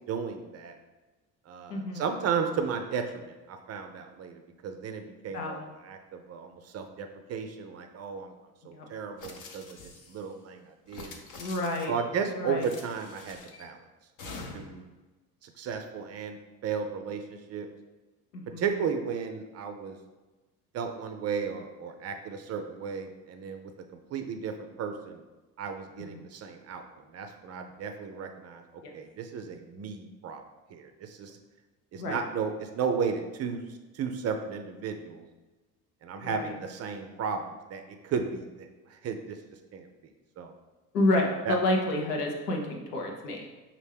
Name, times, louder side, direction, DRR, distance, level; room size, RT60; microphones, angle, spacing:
voice 1, 0.1-0.7 1.5-8.3 8.6-11.1 11.9-13.8 14.2-14.9 15.4-17.7 18.6-20.0 20.7-25.2 25.6-26.8 27.1-30.4 30.7-31.4 31.9-35.3 36.0-39.4 39.7-39.9 40.4-40.5 41.5-41.6, right 6 dB, 35° right, 6 dB, 0.5 m, -34 dB
voice 2, 1.7-2.0 5.3-5.7 8.7-8.9 11.4-11.9 12.4-12.7 18.3-18.6 26.1-26.2 28.8-28.9 32.0-32.2 36.2-36.5 40.9-43.5, left 1 dB, 80° left, 1 dB, 0.9 m, -29 dB
sound 1, 9.2-10.2 10.9-12.0 12.6-13.6 14.2-14.8, left 3 dB, 40° left, 0.8 m, -45 dB
5.2 x 2.6 x 3.3 m, 1.2 s
hypercardioid pair, 65°, 46 cm